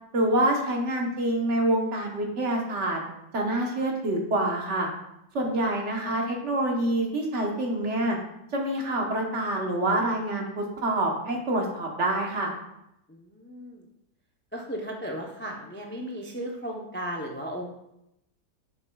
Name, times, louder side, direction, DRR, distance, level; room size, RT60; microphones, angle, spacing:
voice 1, 0.1-3.0 3.3-4.9 5.3-8.2 8.5-12.5, right 1 dB, 50° right, 1 dB, 1.3 m, -26 dB
voice 2, 13.1-13.9 14.5-17.7, equal, 20° left, 0 dB, 0.3 m, -36 dB
8.7 x 6.9 x 2.3 m, 0.84 s
omnidirectional pair, 1.6 m